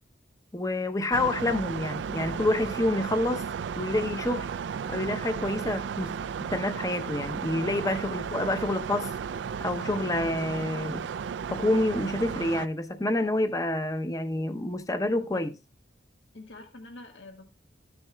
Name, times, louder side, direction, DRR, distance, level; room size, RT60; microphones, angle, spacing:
voice 1, 0.5-3.5 3.8-4.5 4.9-9.1 9.6-11.1 11.5-15.5, left 1 dB, 20° left, 0.7 m, -28 dB
sound 1, 1.1-12.7, right 6 dB, 75° right, 0.3 m, -34 dB
voice 2, 16.3-17.5, left 2 dB, 80° left, 1.6 m, -47 dB
14.0 x 7.0 x 2.2 m
head